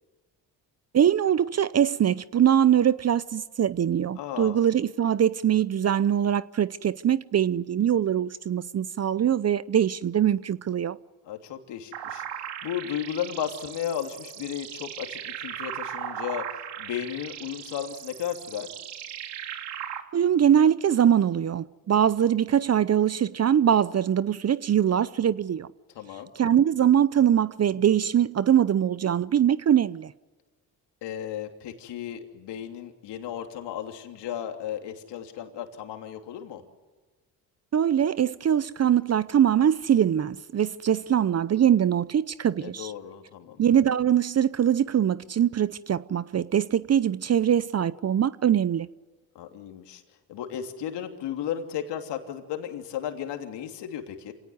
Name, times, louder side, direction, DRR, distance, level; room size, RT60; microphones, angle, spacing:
voice 1, 0.9-11.0 20.1-25.7 26.4-30.1 37.7-42.9 43.6-48.9, right 9 dB, 40° right, 0.7 m, -22 dB
voice 2, 4.1-4.6 11.2-18.7 25.9-26.3 31.0-36.6 42.5-43.6 49.3-50.0 50.3-54.3, left 10 dB, 75° left, 3.0 m, -34 dB
sound 1, 11.9-20.0, right 10 dB, 75° right, 2.3 m, -38 dB
27.0 x 18.0 x 9.5 m
supercardioid pair, 75°, 41 cm